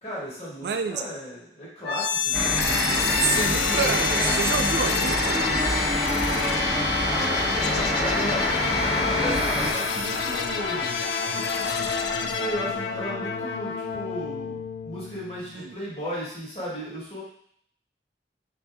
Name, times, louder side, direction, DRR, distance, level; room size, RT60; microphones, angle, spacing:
voice 1, 0.0-2.4 7.6-10.9 11.2-11.4 12.2-17.2, equal, 35° left, -7 dB, 1.5 m, -35 dB
voice 2, 0.6-1.0 2.4-2.5 3.2-5.6 15.6-15.7, right 6 dB, 70° right, 6 dB, 0.3 m, -29 dB
sound 1, 1.8-15.7, left 5 dB, 70° left, 0.4 m, -27 dB
sound 2, 2.3-9.7, equal, 5° right, 0.9 m, -26 dB
4.1 x 2.7 x 3.4 m, 0.65 s
head